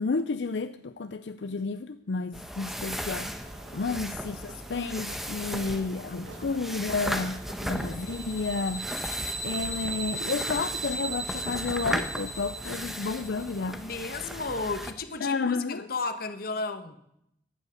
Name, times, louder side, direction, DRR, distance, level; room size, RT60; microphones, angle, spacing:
voice 1, 0.0-3.3 3.7-7.4 7.7-8.9 9.4-13.8 15.2-15.9, left 4 dB, 85° left, 0.5 m, -31 dB
sound 1, 2.3-14.9, equal, ahead, 1.1 m, -36 dB
sound 2, 3.3-11.9, right 1 dB, 90° right, 1.8 m, -50 dB
voice 2, 6.1-6.6 7.6-8.3 13.8-17.0, left 3 dB, 55° left, 1.3 m, -35 dB
sound 3, 7.8-13.6, right 3 dB, 75° right, 3.0 m, -37 dB
15.0 x 11.0 x 6.5 m
head